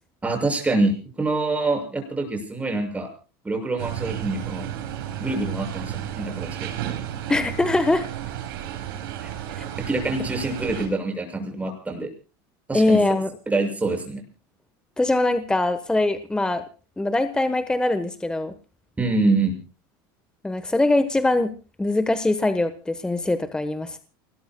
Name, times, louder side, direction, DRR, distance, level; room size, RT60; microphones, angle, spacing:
voice 1, 0.2-3.1 3.4-4.7 5.2-6.7 9.2-9.3 9.9-12.1 12.7-13.0 13.5-14.2 19.0-19.5, right 2 dB, 10° right, 3 dB, 6.7 m, -25 dB
sound 1, 3.8-10.9, right 11 dB, 85° right, 4.9 m, -32 dB
voice 2, 7.3-8.0 9.6-9.7 12.7-13.3 15.0-16.6 17.0-18.5 20.4-21.5 21.8-24.0, left 2 dB, 5° left, 10 dB, 1.2 m, -22 dB
29.0 x 20.0 x 2.3 m, 0.35 s
supercardioid pair, 125°, 12 cm